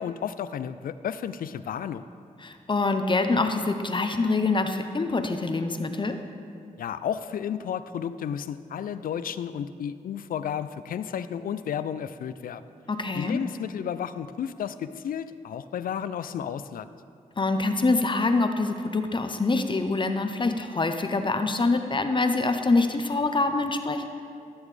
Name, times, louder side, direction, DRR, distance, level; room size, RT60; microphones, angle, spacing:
voice 1, 0.0-2.1 6.8-12.6 13.1-16.9, left 8 dB, 80° left, 13 dB, 0.4 m, -32 dB
voice 2, 2.4-6.2 12.9-13.4 17.4-24.1, left 3 dB, 35° left, 7 dB, 0.6 m, -25 dB
14.5 x 7.1 x 3.3 m, 2.4 s
cardioid pair, 70°, 15 cm